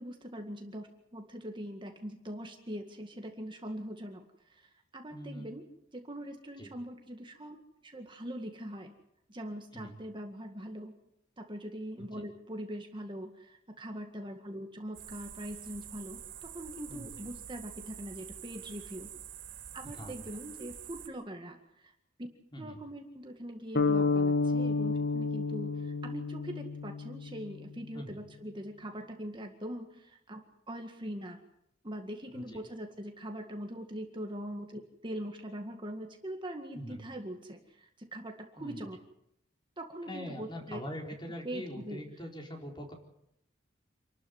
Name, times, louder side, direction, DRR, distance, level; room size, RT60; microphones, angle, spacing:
voice 1, 0.0-5.6 5.9-7.6 7.8-8.9 9.3-11.0 11.4-19.1 19.7-21.9 22.2-22.3 22.6-30.4 30.7-31.4 31.8-39.0 39.8-40.8 41.4-42.0, equal, 25° right, 3 dB, 2.0 m, -42 dB
voice 2, 5.1-5.5 6.6-6.7 9.7-9.9 12.0-12.2 16.9-17.1 19.8-20.1 22.5-22.8 27.9-28.1 32.3-32.6 36.7-37.0 38.6-38.8 40.0-42.9, equal, 25° left, 1 dB, 4.6 m, -43 dB
sound 1, 14.9-21.1, right 9 dB, 75° right, 4.0 m, -47 dB
sound 2, 23.7-27.7, left 4 dB, 55° left, 1.5 m, -30 dB
27.5 x 13.0 x 9.5 m, 0.78 s
head